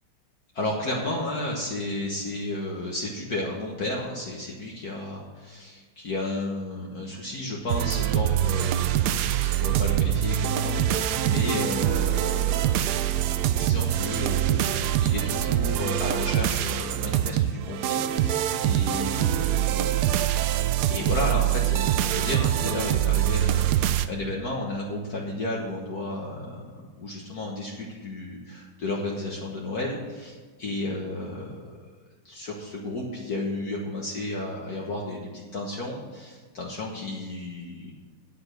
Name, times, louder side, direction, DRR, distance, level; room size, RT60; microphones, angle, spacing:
voice 1, 0.5-13.1 13.6-20.2 20.9-26.6 27.0-31.8 32.2-37.9, left 2 dB, 50° left, -2 dB, 1.7 m, -33 dB
sound 1, 7.7-24.1, right 11 dB, 75° right, 0.9 m, -24 dB
9.7 x 7.9 x 6.5 m, 1.4 s
omnidirectional pair, 2.2 m